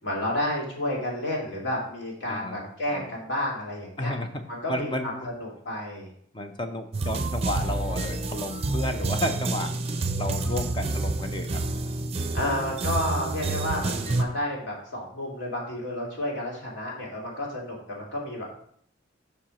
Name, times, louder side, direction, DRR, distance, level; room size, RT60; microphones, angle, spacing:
voice 1, 0.0-4.1 4.5-5.1 5.4-6.1 12.3-18.5, left 1 dB, 70° left, -3 dB, 2.6 m, -31 dB
voice 2, 2.3-2.6 2.9-3.1 4.0-4.3 4.7-5.3 6.3-9.7 10.2-11.6, left 1 dB, 25° left, 6 dB, 0.6 m, -32 dB
sound 1, 6.9-14.2, right 2 dB, 30° right, 0.6 m, -28 dB
5.5 x 4.4 x 6.3 m, 0.64 s
head